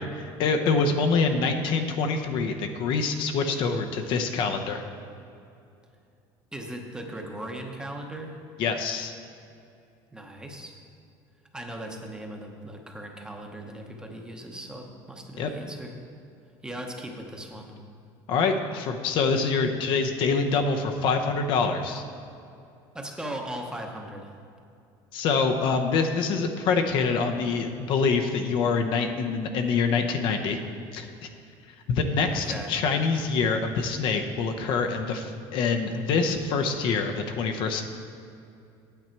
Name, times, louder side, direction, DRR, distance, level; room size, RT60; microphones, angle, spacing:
voice 1, 0.0-4.8 8.6-9.1 15.4-15.5 18.3-22.0 25.1-30.6 30.9-31.1 31.9-37.8, left 4 dB, 60° left, 5 dB, 0.7 m, -25 dB
voice 2, 6.5-8.4 10.1-10.8 11.5-15.9 16.6-17.7 22.9-24.3 32.3-32.7, right 1 dB, 10° right, 2 dB, 0.9 m, -38 dB
9.1 x 8.0 x 4.5 m, 2.6 s
cardioid pair, 135°, 10 cm